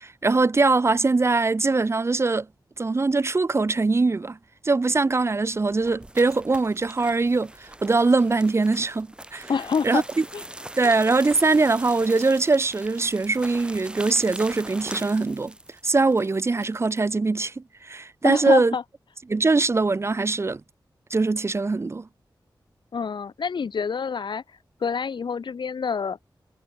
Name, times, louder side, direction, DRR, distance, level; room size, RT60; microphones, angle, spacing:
voice 1, 0.0-2.5 2.8-4.4 4.6-9.5 9.8-10.2 10.8-15.5 15.8-18.7 19.3-20.6 21.1-22.1, right 3 dB, 35° right, 0.8 m, -22 dB
sound 1, 5.3-17.0, right 1 dB, 10° right, 1.8 m, -41 dB
voice 2, 9.5-10.0 10.3-10.4 18.2-18.8 22.9-24.4 24.8-26.2, left 6 dB, 75° left, 2.2 m, -26 dB
wide cardioid pair, 120°, 8 cm